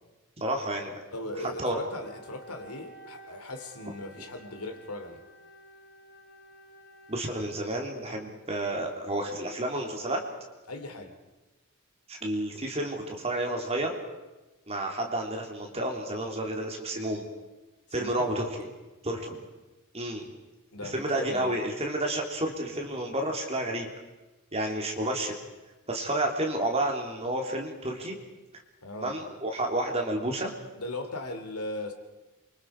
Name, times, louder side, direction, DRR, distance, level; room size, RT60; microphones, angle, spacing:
voice 1, 0.4-1.0 1.6-1.7 7.1-10.2 12.1-13.9 14.7-17.3 17.9-18.7 19.0-19.4 19.9-20.3 20.8-23.9 24.5-25.3 25.9-28.2 29.0-30.5, right 1 dB, 30° right, 1 dB, 3.4 m, -30 dB
voice 2, 1.1-5.2 10.7-11.2 18.0-18.3 20.7-21.5 28.8-29.2 30.8-31.9, left 2 dB, 85° left, 6 dB, 2.9 m, -38 dB
Wind instrument woodwind instrument, 1.9-8.2, right 1 dB, 50° left, 4.2 m, -52 dB
28.0 x 25.0 x 4.9 m, 1.1 s
head